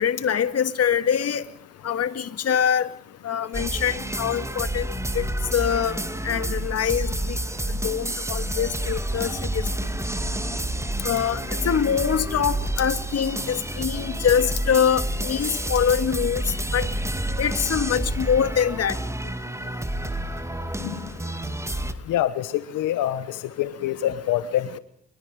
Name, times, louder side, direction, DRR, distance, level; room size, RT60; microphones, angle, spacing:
voice 1, 0.0-1.4 1.8-2.9 3.2-5.3 5.5-6.0 6.2-7.4 7.8-9.7 11.0-16.4 16.7-16.9 17.4-19.0, left 8 dB, 55° left, 12 dB, 2.1 m, -24 dB
sound 1, 3.5-21.9, right 1 dB, 10° right, 2.2 m, -29 dB
voice 2, 22.1-23.2 23.6-24.8, left 12 dB, 85° left, 13 dB, 1.2 m, -25 dB
29.5 x 23.0 x 5.0 m, 0.63 s
cardioid pair, 90°, 30 cm